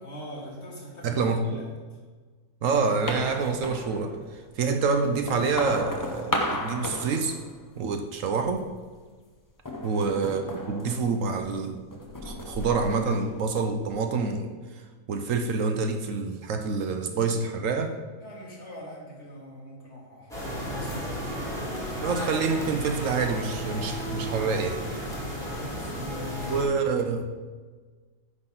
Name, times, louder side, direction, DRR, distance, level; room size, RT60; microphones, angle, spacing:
voice 1, 0.0-2.0 9.7-10.1 18.2-21.3 25.4-26.7, left 1 dB, 50° left, -3 dB, 2.1 m, -43 dB
voice 2, 1.0-1.6 2.6-7.4 7.8-8.7 9.8-11.8 12.2-14.8 15.1-18.0 22.0-24.8 26.5-27.3, right 4 dB, 70° right, 6 dB, 1.0 m, -27 dB
sound 1, 2.8-4.4 4.9-7.9 8.2-8.8 9.6-11.6 11.9-14.0, left 1 dB, 30° left, 0.3 m, -35 dB
sound 2, 20.3-26.6, equal, ahead, 2.1 m, -33 dB
9.7 x 3.9 x 5.7 m, 1.4 s
omnidirectional pair, 1.5 m